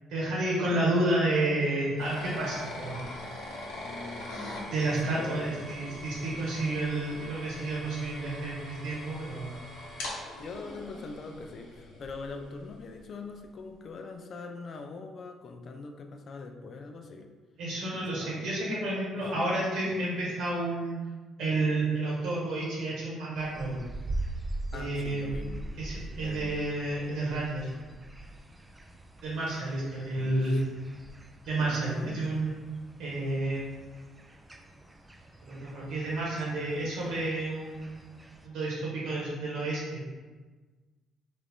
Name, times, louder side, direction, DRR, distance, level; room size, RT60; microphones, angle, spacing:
voice 1, 0.1-3.0 4.7-9.5 17.6-21.0 21.4-23.8 24.7-25.3 25.8-27.7 29.2-30.6 31.5-32.5 33.0-33.6 35.4-38.1 38.4-40.0, right 2 dB, 75° right, -5 dB, 1.4 m, -30 dB
sound 1, 2.0-12.8, left 1 dB, 85° left, 0.9 m, -42 dB
voice 2, 3.8-4.3 5.0-5.7 10.4-17.3 17.9-18.4 19.4-19.6 24.7-25.7 26.2-26.6 30.0-30.6 31.6-32.3, left 4 dB, 50° left, 5 dB, 0.4 m, -42 dB
sound 2, 23.3-38.5, right 2 dB, 15° right, 0.3 m, -43 dB
3.3 x 2.4 x 3.5 m, 1.3 s
supercardioid pair, 75°, 0 cm